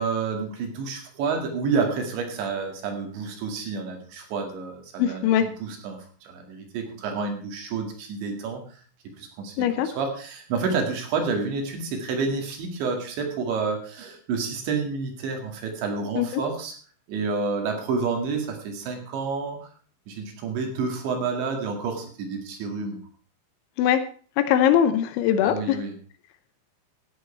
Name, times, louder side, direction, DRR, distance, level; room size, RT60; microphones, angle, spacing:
voice 1, 0.0-8.8 9.2-16.7 17.1-19.7 20.1-23.0 25.4-25.9, right 4 dB, 65° right, 3 dB, 4.2 m, -29 dB
voice 2, 5.0-5.5 9.6-9.9 16.2-16.4 23.8-24.0 24.4-25.8, left 10 dB, 80° left, 9 dB, 3.0 m, -21 dB
14.0 x 9.5 x 4.4 m, 0.42 s
omnidirectional pair, 5.8 m